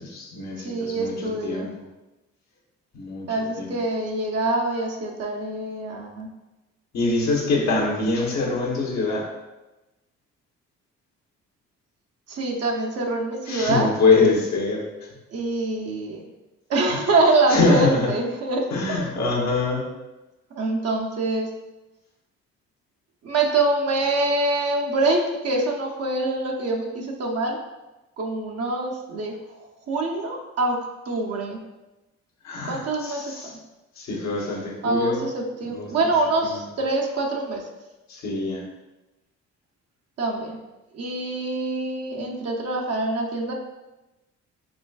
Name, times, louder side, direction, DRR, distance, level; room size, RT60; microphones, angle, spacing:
voice 1, 0.0-1.1 1.4-1.7 2.9-3.8 6.9-9.2 13.5-14.8 17.5-18.1 18.7-19.8 32.4-33.5 34.0-35.2 35.7-35.9 36.4-36.5 38.1-38.6, left 3 dB, 65° left, -2 dB, 1.2 m, -24 dB
voice 2, 0.6-1.7 3.3-6.3 12.3-13.9 15.3-16.3 16.7-19.1 20.5-21.5 23.2-27.6 28.2-29.6 29.9-30.8 31.1-31.6 32.6-33.6 34.8-37.6 40.2-40.6 40.9-43.5, right 2 dB, 55° right, 0 dB, 0.8 m, -25 dB
4.9 x 3.1 x 2.4 m, 1.0 s
cardioid pair, 90°, 30 cm